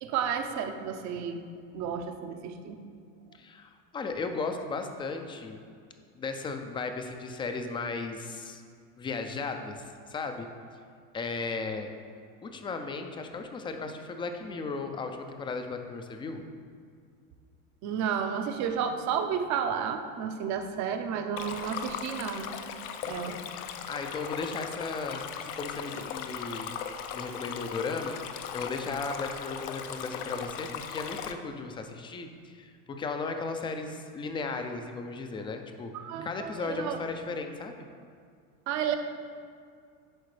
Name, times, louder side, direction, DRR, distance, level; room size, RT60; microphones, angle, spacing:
voice 1, 0.0-1.4 1.7-2.8 17.8-22.5 23.0-23.4 35.9-37.0 38.7-39.0, right 7 dB, 45° right, 6 dB, 0.7 m, -32 dB
voice 2, 3.3-5.6 6.2-8.6 9.0-10.5 11.1-11.9 12.4-16.4 23.9-26.8 27.1-28.2 28.5-35.9 36.2-37.9, left 4 dB, 15° left, 6 dB, 0.4 m, -35 dB
Stream, 21.4-31.3, left 8 dB, 70° left, 0.6 m, -38 dB
10.5 x 4.2 x 3.2 m, 2.2 s
supercardioid pair, 115°, 40 cm